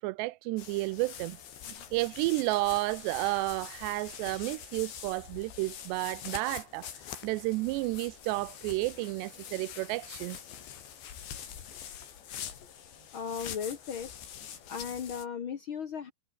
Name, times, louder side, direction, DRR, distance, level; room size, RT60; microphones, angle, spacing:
voice 1, 0.0-1.4 1.9-6.9 7.2-10.4, right 20 dB, 90° right, 2.8 m, -31 dB
sound 1, 0.6-15.3, left 9 dB, 90° left, 5.5 m, -45 dB
voice 2, 13.1-14.1 14.7-16.1, left 7 dB, 75° left, 1.2 m, -36 dB
omnidirectional pair, 4.9 m